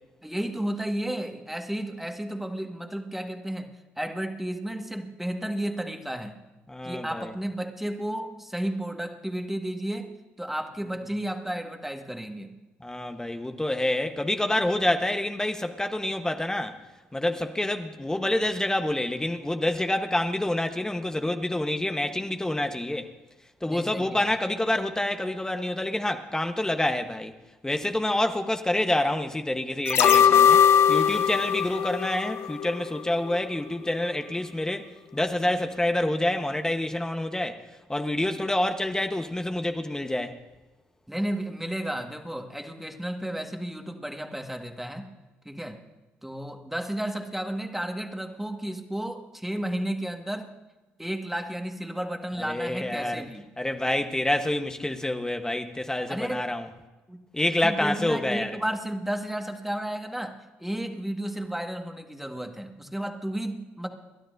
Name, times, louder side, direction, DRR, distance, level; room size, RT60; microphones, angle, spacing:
voice 1, 0.2-6.4 6.8-10.1 10.4-12.6 23.6-24.2 41.1-45.1 45.5-45.8 46.2-50.5 51.0-53.5 56.1-56.5 57.1-57.2 57.6-63.9, right 1 dB, 5° right, 1.7 m, -33 dB
voice 2, 6.7-7.3 12.8-16.8 17.1-23.1 23.6-27.3 27.6-30.6 30.9-37.6 37.9-40.4 52.4-53.2 53.6-56.7 57.3-58.5, left 1 dB, 10° left, 1.1 m, -27 dB
sound 1, 29.9-33.0 33.3-33.4, left 8 dB, 60° left, 0.6 m, -20 dB
28.5 x 12.0 x 2.6 m
hypercardioid pair, 60°, 5 cm